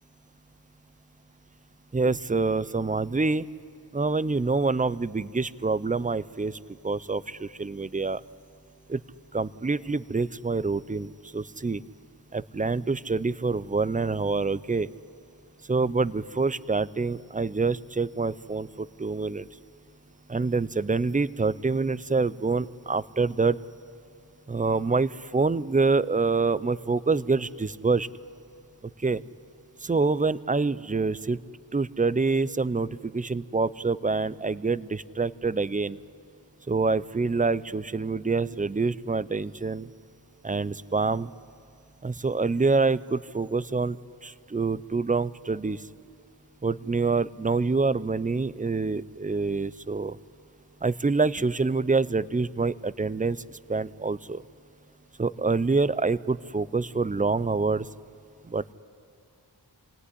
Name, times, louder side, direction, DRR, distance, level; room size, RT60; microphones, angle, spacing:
voice 1, 1.9-3.5 3.9-6.6 6.8-8.2 8.9-9.0 9.3-11.8 12.3-14.9 15.7-19.5 20.3-23.6 24.5-28.1 28.8-29.2 29.8-31.4 31.7-36.0 36.7-39.9 40.4-41.3 42.0-44.0 44.2-45.9 46.6-50.2 50.8-54.4 55.2-57.9 58.4-58.7, right 4 dB, 20° right, 18 dB, 0.5 m, -26 dB
25.5 x 18.0 x 9.9 m, 2.4 s
wide cardioid pair, 60°, 42 cm